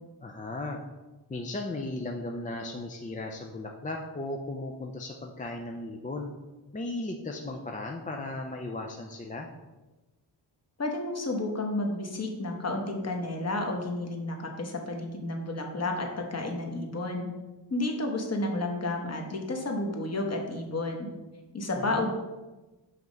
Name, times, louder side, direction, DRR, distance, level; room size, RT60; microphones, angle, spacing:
voice 1, 0.2-0.8 1.3-6.3 6.7-9.5 21.8-22.1, left 2 dB, 20° left, 1 dB, 0.4 m, -36 dB
voice 2, 10.8-17.3 17.7-21.1 21.5-22.1, left 2 dB, 35° left, 2 dB, 1.1 m, -31 dB
5.8 x 3.1 x 5.1 m, 1.1 s
cardioid pair, 85°, 45 cm